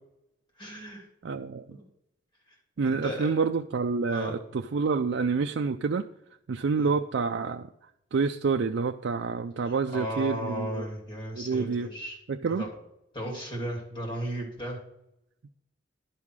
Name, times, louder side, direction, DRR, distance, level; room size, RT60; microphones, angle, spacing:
voice 1, 0.6-1.0 1.7-1.8 2.8-3.4 4.1-4.3 6.8-6.9 9.6-12.2 12.5-12.7 13.1-14.8, equal, 25° left, -1 dB, 2.9 m, -35 dB
voice 2, 1.2-1.8 2.8-6.1 6.5-7.7 8.1-10.9 11.3-11.9 12.3-12.6, right 4 dB, 70° right, 4 dB, 0.4 m, -28 dB
11.0 x 5.6 x 4.7 m, 0.82 s
head